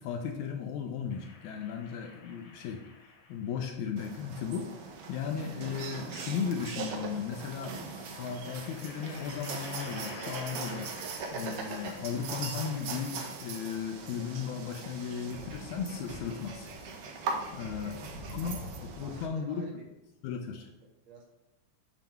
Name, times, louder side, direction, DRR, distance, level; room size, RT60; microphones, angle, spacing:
voice 1, 0.0-2.8 3.3-4.7 5.1-7.8 8.1-11.0 11.3-16.7 17.5-18.0 18.3-19.7 20.2-20.7, left 7 dB, 80° left, 4 dB, 1.8 m, -36 dB
sound 1, 1.1-3.7 4.9-5.9 7.5-13.5, left 4 dB, 60° left, 2.0 m, -52 dB
sound 2, 4.0-19.3, right 4 dB, 90° right, 1.3 m, -40 dB
voice 2, 17.7-20.0 20.6-20.7 21.1-21.2, right 3 dB, 65° right, -1 dB, 2.1 m, -52 dB
7.1 x 3.0 x 5.7 m, 0.96 s
omnidirectional pair, 3.7 m